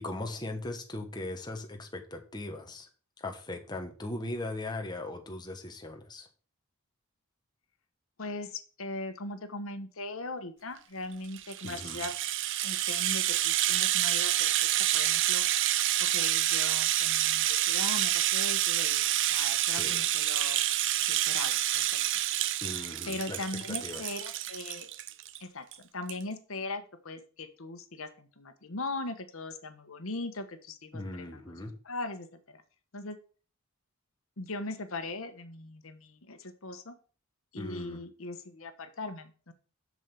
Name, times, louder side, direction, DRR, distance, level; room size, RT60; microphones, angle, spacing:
voice 1, 0.0-2.9 3.2-6.3 11.6-12.0 19.8-20.1 22.6-24.0 30.9-31.7 37.6-38.0, left 2 dB, 20° left, 3 dB, 1.2 m, -39 dB
voice 2, 8.2-12.1 12.6-14.5 14.9-15.4 16.1-20.6 21.1-22.0 23.0-24.9 25.4-31.5 31.8-32.6 32.9-33.2 34.4-36.9 37.5-39.5, left 2 dB, 65° left, 8 dB, 1.2 m, -39 dB
Rattle (instrument), 11.2-25.4 25.7-25.8 26.1-26.2, right 13 dB, 60° right, 0.5 m, -28 dB
7.3 x 6.3 x 6.8 m, 0.39 s
head